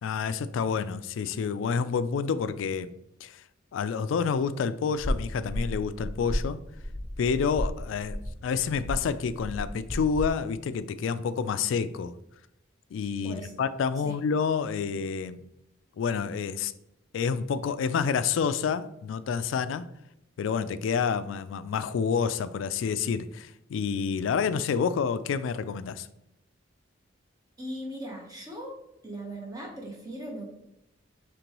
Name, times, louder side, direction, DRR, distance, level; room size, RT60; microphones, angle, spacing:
voice 1, 0.0-2.9 3.2-3.4 3.7-6.6 7.2-12.1 12.9-15.4 16.0-16.7 17.1-19.9 20.4-26.1, left 6 dB, 80° left, 0.3 m, -28 dB
sound 1, 5.0-10.3, equal, 20° left, 0.6 m, -34 dB
voice 2, 13.2-13.5 14.0-14.2 27.6-28.8 29.0-30.5, right 1 dB, 20° right, 1.0 m, -38 dB
5.2 x 3.3 x 2.9 m
head